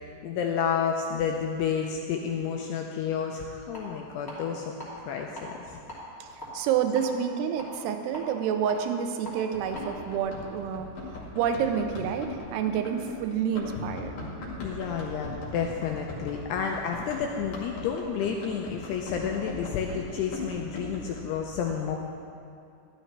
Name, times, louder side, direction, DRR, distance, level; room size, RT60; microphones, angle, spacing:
voice 1, 0.0-5.8 14.6-22.0, left 7 dB, 85° left, 1 dB, 2.3 m, -30 dB
sound 1, 3.7-3.8 4.3-4.9 5.2-5.4 5.9-7.0 7.6-9.3 9.7-9.8, left 1 dB, 10° left, 0.9 m, -42 dB
voice 2, 6.2-14.1, right 8 dB, 80° right, 6 dB, 2.4 m, -29 dB
Run, 9.5-21.2, left 2 dB, 55° left, 2.7 m, -40 dB
12.0 x 12.0 x 3.3 m, 2.6 s
omnidirectional pair, 5.3 m